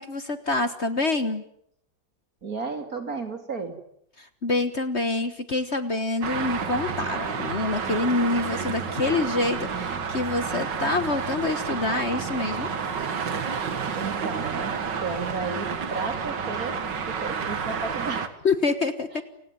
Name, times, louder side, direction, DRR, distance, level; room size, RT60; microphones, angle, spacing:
voice 1, 0.0-1.4 4.2-12.7 18.4-19.1, left 3 dB, 40° left, 11 dB, 1.6 m, -26 dB
voice 2, 2.4-3.8 9.6-10.1 13.9-14.7 15.0-16.7 17.1-18.3 19.1-19.2, right 4 dB, 50° right, 7 dB, 3.4 m, -33 dB
Traffic noise roadway noise, 6.2-18.3, right 6 dB, 75° right, 2.5 m, -30 dB
29.5 x 18.5 x 9.4 m, 0.74 s
omnidirectional pair, 1.9 m